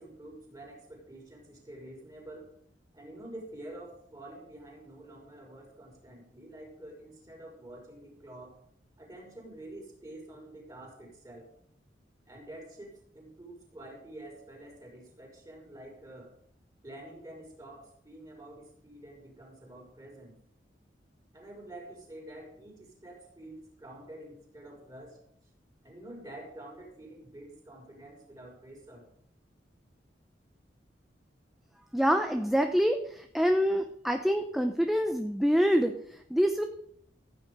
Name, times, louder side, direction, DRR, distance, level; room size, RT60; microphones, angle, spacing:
voice 1, 0.0-2.5 2.9-8.6 9.0-11.5 12.3-16.3 16.8-20.4 21.3-25.2 25.8-29.1, right 1 dB, 20° right, -1 dB, 5.1 m, -48 dB
voice 2, 31.9-36.6, equal, ahead, 5 dB, 0.7 m, -26 dB
15.5 x 9.7 x 5.2 m, 0.68 s
head